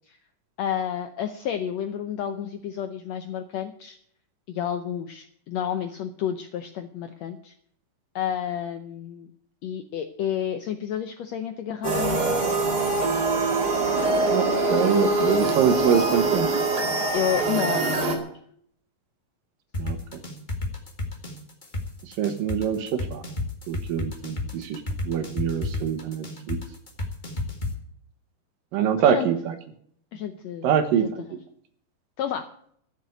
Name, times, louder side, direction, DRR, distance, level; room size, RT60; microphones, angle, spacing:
voice 1, 0.6-4.0 4.5-7.5 8.1-9.3 9.6-12.5 17.1-18.3 29.0-29.3 30.1-30.7 31.0-31.1 32.2-32.5, left 9 dB, 75° left, 8 dB, 1.5 m, -30 dB
sound 1, 11.8-18.2, right 2 dB, 35° right, 2.2 m, -23 dB
voice 2, 14.3-16.5 19.8-20.0 22.2-23.2 23.7-26.6 28.7-29.4 30.6-31.2, right 8 dB, 80° right, 8 dB, 2.9 m, -24 dB
sound 2, 19.7-27.7, left 2 dB, 30° left, 0.8 m, -30 dB
14.0 x 7.1 x 9.2 m, 0.64 s
omnidirectional pair, 4.0 m